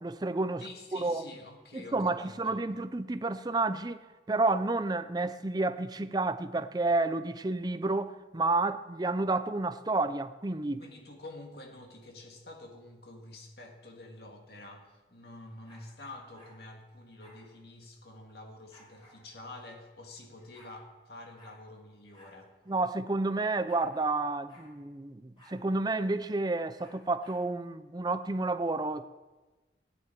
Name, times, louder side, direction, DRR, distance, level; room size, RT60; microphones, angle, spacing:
voice 1, 0.0-0.6 0.9-1.3 1.7-4.0 4.3-10.8 22.7-29.1, right 2 dB, 25° right, 0.5 m, -30 dB
voice 2, 0.6-2.6 10.8-22.5, left 2 dB, 60° left, 2.0 m, -48 dB
sound 1, 15.6-16.6 17.2-17.4 18.7-19.2 20.1-20.2 20.3-20.7 21.4-21.6 22.1-22.3 22.6-22.7 23.7-24.2 24.5-24.7 25.4-25.6 26.8-27.4, left 1 dB, 25° left, 4.4 m, -57 dB
15.5 x 9.7 x 4.6 m
head